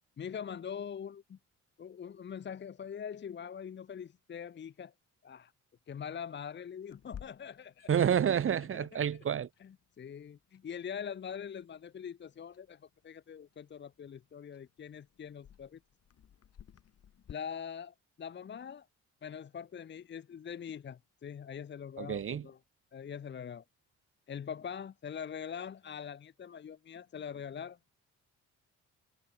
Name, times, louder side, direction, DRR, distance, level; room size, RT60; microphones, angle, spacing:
voice 1, 0.2-1.4 1.8-4.9 5.2-5.5 5.9-7.9 8.7-9.0 9.6-15.8 17.3-18.9 19.2-22.6 22.9-23.6 24.3-27.8, left 7 dB, 40° left, 0.8 m, -43 dB
Clock, 6.9-17.3, left 9 dB, 55° left, 2.0 m, -57 dB
voice 2, 7.9-9.5 22.0-22.5, right 8 dB, 45° right, 1.0 m, -29 dB
cardioid pair, 90°, 30 cm